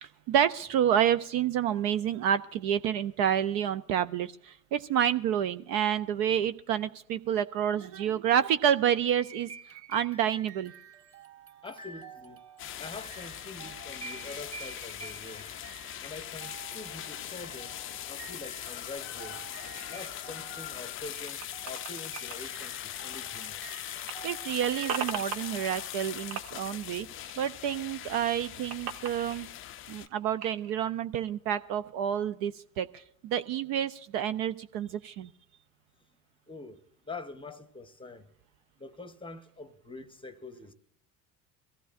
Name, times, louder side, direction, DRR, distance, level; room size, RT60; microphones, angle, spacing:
voice 1, 0.0-9.5 9.9-10.7 24.2-27.1 27.4-29.5 29.9-35.3, right 9 dB, 50° right, 0.5 m, -29 dB
sound 1, 9.1-26.1, right 6 dB, 30° right, 2.1 m, -49 dB
voice 2, 11.6-12.4 12.8-15.5 16.0-17.7 18.1-19.4 19.9-23.6 36.5-38.3 38.8-40.7, left 3 dB, 10° left, 0.8 m, -45 dB
sound 2, 12.6-30.1, left 12 dB, 30° left, 0.4 m, -41 dB
sound 3, 18.9-23.7 23.9-26.1 26.3-27.8 28.1-30.7, right 7 dB, 65° right, 1.0 m, -41 dB
22.5 x 14.5 x 2.5 m
hypercardioid pair, 75°, 48 cm